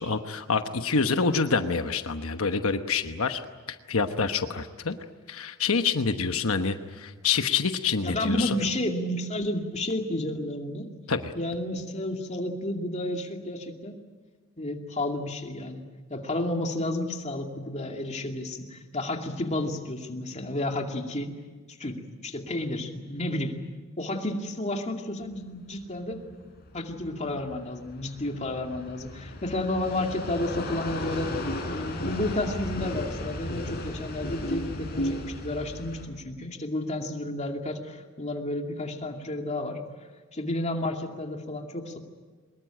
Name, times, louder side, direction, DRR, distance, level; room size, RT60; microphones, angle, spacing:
voice 1, 0.0-3.4 3.7-5.0 5.3-8.6 11.1-11.3, left 5 dB, 70° left, 8 dB, 1.1 m, -27 dB
voice 2, 8.0-10.8 11.4-13.9 14.6-15.8 16.1-21.3 21.7-23.6 24.0-26.3 26.7-31.3 31.6-39.8 40.3-42.0, left 1 dB, 30° left, 3 dB, 2.5 m, -31 dB
sound 1, 25.2-36.1, left 1 dB, 45° left, 4.5 m, -35 dB
24.0 x 21.5 x 9.1 m, 1.4 s
head